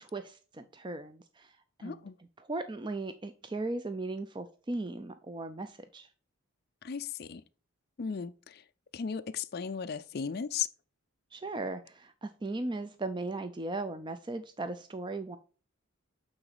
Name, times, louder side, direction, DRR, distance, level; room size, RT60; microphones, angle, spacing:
voice 1, 0.0-2.0 2.5-6.1 11.3-15.4, right 2 dB, 20° right, 0.4 m, -37 dB
voice 2, 1.8-2.2 6.8-7.4 8.0-8.6 8.9-10.7, left 6 dB, 45° left, 0.4 m, -36 dB
8.8 x 3.9 x 4.0 m
head